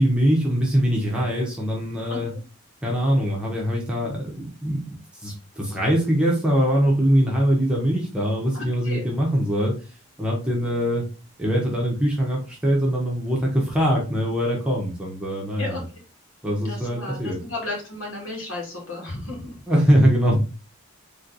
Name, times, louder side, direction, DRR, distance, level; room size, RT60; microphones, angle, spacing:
voice 1, 0.0-2.3 2.8-9.8 10.2-11.1 11.4-15.8 16.4-17.4 19.7-20.4, equal, 5° right, -3 dB, 1.1 m, -22 dB
voice 2, 8.5-9.1 15.6-15.8 16.6-19.5, left 2 dB, 70° left, -1 dB, 2.1 m, -33 dB
3.9 x 3.2 x 4.0 m, 0.34 s
head